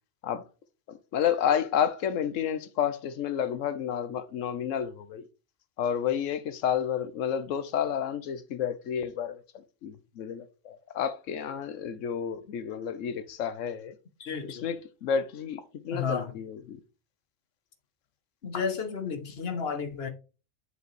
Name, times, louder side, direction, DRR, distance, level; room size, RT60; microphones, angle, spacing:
voice 1, 0.9-5.2 5.8-14.0 14.4-16.8, left 8 dB, 75° left, 1.1 m, -30 dB
voice 2, 14.2-14.6 15.9-16.3 18.4-20.1, left 6 dB, 55° left, 1.2 m, -32 dB
7.9 x 4.8 x 3.2 m
omnidirectional pair, 1.3 m